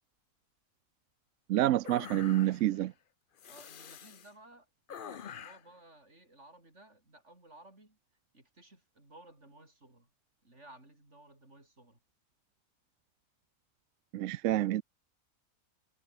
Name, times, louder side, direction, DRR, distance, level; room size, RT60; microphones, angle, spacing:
voice 1, 1.5-2.9 14.1-14.8, right 14 dB, 65° right, 0.8 m, -28 dB
sound 1, 1.8-2.8 3.4-4.3 4.9-5.7, left 8 dB, 45° left, 0.7 m, -46 dB
voice 2, 3.5-8.0 8.3-10.1 10.4-12.0, right 2 dB, 50° right, 6.6 m, -57 dB
omnidirectional pair, 1.6 m